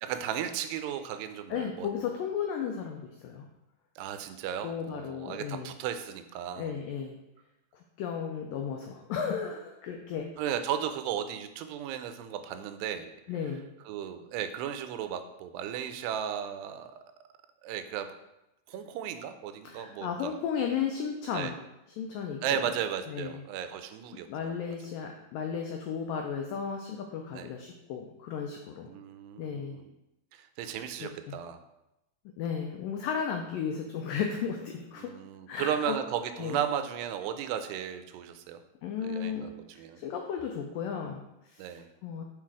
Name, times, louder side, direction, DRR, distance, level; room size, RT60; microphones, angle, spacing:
voice 1, 0.0-1.9 4.0-6.8 10.4-13.1 13.9-17.0 17.6-18.1 18.7-20.3 21.3-21.5 22.4-24.6 27.3-27.5 28.9-29.9 30.3-31.6 35.0-38.6 39.0-40.0 41.6-41.9, right 9 dB, 85° right, 9 dB, 2.7 m, -35 dB
voice 2, 1.5-3.4 4.6-5.7 6.6-7.2 7.7-10.3 13.3-13.6 19.6-21.6 22.0-22.7 23.1-23.4 24.3-28.9 29.4-29.8 31.0-31.4 32.4-35.1 35.5-36.0 36.4-36.7 38.8-41.7 42.0-42.2, left 7 dB, 90° left, 3 dB, 1.9 m, -34 dB
7.6 x 4.4 x 4.8 m, 0.91 s
omnidirectional pair, 4.7 m